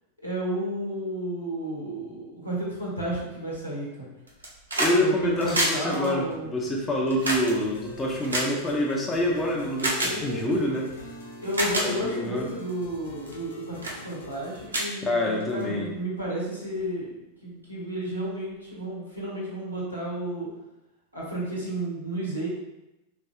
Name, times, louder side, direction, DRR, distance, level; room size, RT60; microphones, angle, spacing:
voice 1, 0.2-4.1 4.9-6.5 10.0-10.6 11.4-17.1 17.4-20.5 21.1-22.5, right 1 dB, 90° left, -6 dB, 1.1 m, -32 dB
sound 1, 4.3-5.0 5.3-9.1 9.8-10.1 10.9-11.0 11.4-11.9 12.5-12.7 13.3-13.5 13.8-14.0 14.4-14.5 14.7-15.6 16.8-16.9, right 1 dB, 75° right, 0.7 m, -28 dB
voice 2, 4.8-10.9 11.9-12.5 15.0-15.9, left 1 dB, 20° left, -2 dB, 0.6 m, -26 dB
sound 2, 7.3-14.7, left 4 dB, 65° left, 0.5 m, -43 dB
4.2 x 2.7 x 2.3 m, 0.96 s
figure-of-eight pair, 90°, 0 cm